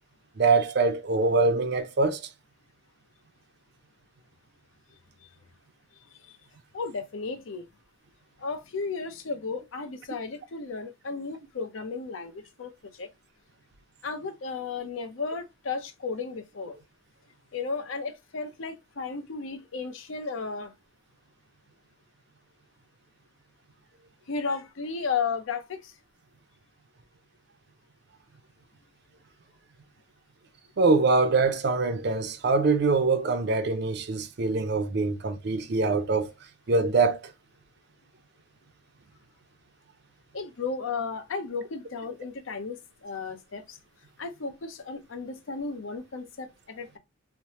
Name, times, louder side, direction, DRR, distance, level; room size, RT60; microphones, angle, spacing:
voice 1, 0.4-2.2 30.8-36.3 36.7-37.3, right 3 dB, 55° right, 0.4 m, -24 dB
voice 2, 6.7-7.6 8.4-13.1 14.0-16.8 17.5-20.7 24.3-25.9 40.3-43.8 44.2-47.0, left 4 dB, 80° left, 0.6 m, -34 dB
3.1 x 2.0 x 2.7 m
head